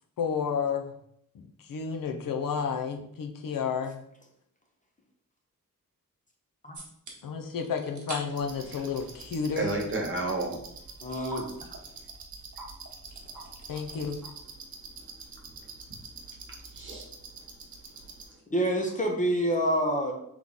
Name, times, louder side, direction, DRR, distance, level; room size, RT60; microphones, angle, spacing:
voice 1, 0.2-0.9 1.3-4.0 7.2-9.7 13.7-14.2, left 6 dB, 70° left, 4 dB, 0.6 m, -31 dB
sound 1, 6.7-7.1 7.6-8.2 8.5-9.8 10.1-14.2, right 3 dB, 55° right, 1.0 m, -48 dB
sound 2, 8.4-18.2, right 4 dB, 85° right, 0.9 m, -46 dB
sound 3, 9.1-9.2 11.3-11.5 12.0-12.1 12.6-12.7 13.3-13.5 13.7-13.8 14.2-14.5, right 1 dB, ahead, 1.2 m, -43 dB
voice 2, 9.6-10.6 13.1-13.3 14.8-15.3 15.5-16.3 16.7-17.5 18.0-18.4, right 2 dB, 35° right, -1 dB, 1.1 m, -35 dB
voice 3, 11.0-11.5 18.5-20.1, equal, 20° left, 1 dB, 0.6 m, -27 dB
3.6 x 3.1 x 3.9 m, 0.73 s
wide cardioid pair, 150°, 35 cm